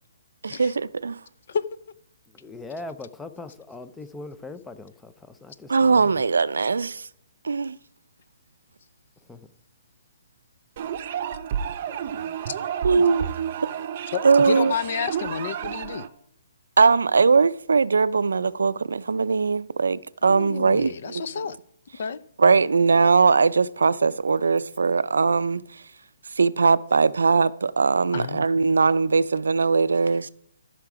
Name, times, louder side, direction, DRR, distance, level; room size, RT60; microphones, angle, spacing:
voice 1, 0.4-1.2 5.7-7.1 7.4-7.8 12.8-13.3 14.2-14.7 16.8-21.2 22.4-25.6 26.4-30.3, right 4 dB, 90° right, 0.5 m, -20 dB
voice 2, 2.3-6.2 9.3-9.5, left 2 dB, 5° left, 0.5 m, -40 dB
sound 1, 10.8-16.1, right 9 dB, 40° right, 0.7 m, -31 dB
voice 3, 14.1-16.1 20.2-21.6 22.0-22.2 28.1-28.4, left 7 dB, 50° left, 0.6 m, -30 dB
14.0 x 5.9 x 4.8 m
hypercardioid pair, 160°, 0 cm